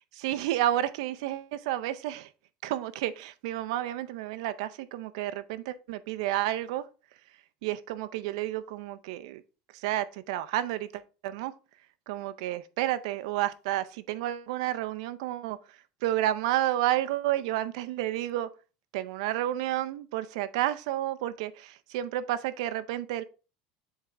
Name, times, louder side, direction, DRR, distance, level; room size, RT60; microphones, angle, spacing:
voice 1, 0.2-2.3 2.6-6.8 7.6-9.4 9.7-11.5 12.1-15.6 16.0-18.5 18.9-23.2, right 13 dB, 80° right, 0.5 m, -31 dB
7.9 x 3.7 x 3.4 m
cardioid pair, 150°, 3 cm